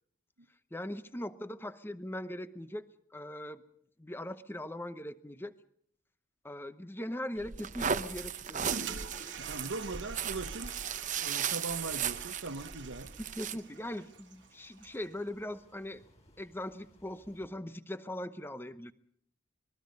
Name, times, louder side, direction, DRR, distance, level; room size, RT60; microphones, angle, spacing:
voice 1, 0.7-3.6 4.0-5.5 6.4-9.0 13.3-16.0 16.4-18.9, left 1 dB, 10° left, 12 dB, 0.8 m, -40 dB
sound 1, 7.4-13.6, right 7 dB, 40° right, 0.8 m, -36 dB
Toilet flush, 8.2-15.1, right 5 dB, 60° right, 1.6 m, -46 dB
voice 2, 9.4-10.7 11.2-13.1, right 3 dB, 90° right, 11 dB, 1.1 m, -40 dB
sound 2, 12.0-17.5, left 1 dB, 35° left, 6.2 m, -65 dB
26.0 x 21.5 x 5.3 m, 0.66 s
head